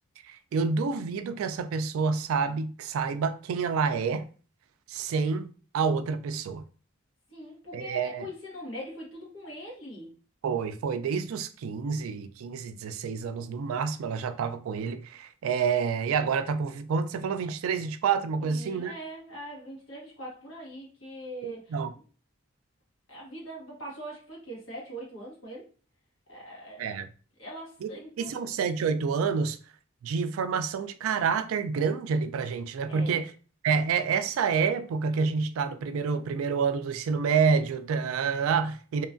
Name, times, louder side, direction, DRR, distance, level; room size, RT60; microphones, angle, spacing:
voice 1, 0.3-4.3 4.9-6.6 7.7-8.3 10.4-18.9 21.4-21.9 26.8-27.1 27.8-27.9 28.2-29.6 30.0-33.3 33.6-39.1, right 5 dB, 80° right, 0.3 m, -28 dB
voice 2, 7.3-10.2 18.4-21.8 23.1-25.7 26.3-26.8 27.4-28.5 32.9-33.2, right 1 dB, 65° left, 1.2 m, -42 dB
2.9 x 2.3 x 2.5 m
head